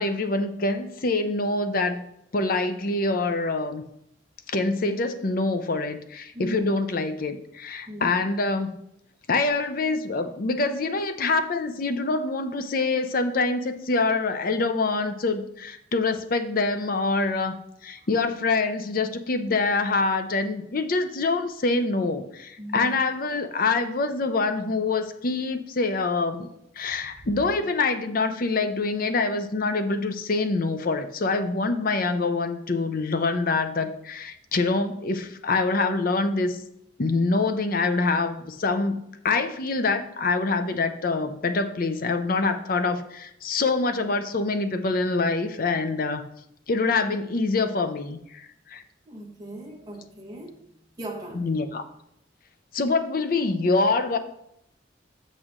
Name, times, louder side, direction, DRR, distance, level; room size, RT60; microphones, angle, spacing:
voice 1, 0.0-2.0 2.3-3.8 4.5-8.7 9.3-17.5 17.8-26.5 26.8-36.6 37.0-39.0 39.2-46.2 46.7-48.8 51.3-51.8 52.7-54.2, left 3 dB, 50° left, 9 dB, 0.6 m, -25 dB
voice 2, 7.9-8.2 22.6-23.0 49.1-50.5 51.0-51.5, right 1 dB, 20° right, -2 dB, 1.2 m, -38 dB
6.6 x 6.2 x 3.7 m, 0.76 s
head